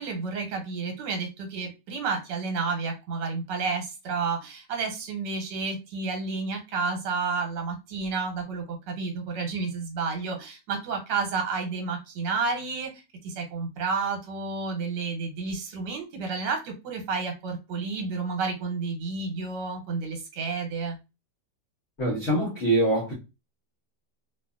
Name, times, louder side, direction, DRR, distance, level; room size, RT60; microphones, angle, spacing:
voice 1, 0.0-12.9 13.2-21.0, right 4 dB, 85° right, 1.4 m, -31 dB
voice 2, 22.0-23.1, right 1 dB, 50° left, 1.0 m, -24 dB
2.8 x 2.5 x 2.3 m
omnidirectional pair, 1.9 m